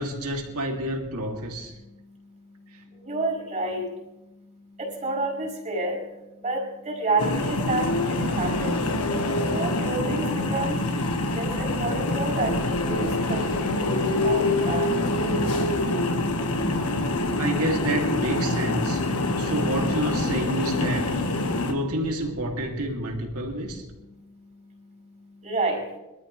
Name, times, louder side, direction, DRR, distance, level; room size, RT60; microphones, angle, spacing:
voice 1, 0.0-1.7 17.4-19.0 19.4-21.1 21.7-23.8, equal, 75° right, 1 dB, 2.4 m, -29 dB
voice 2, 3.0-3.8 4.8-6.0 6.4-8.7 9.5-10.2 10.5-10.8 11.3-13.4 13.7-13.9 14.2-14.9 15.2-15.7 25.4-25.8, right 2 dB, 35° right, -3 dB, 4.5 m, -29 dB
sound 1, 7.2-21.7, left 2 dB, 90° left, 1.4 m, -25 dB
23.0 x 13.0 x 3.1 m, 0.99 s
head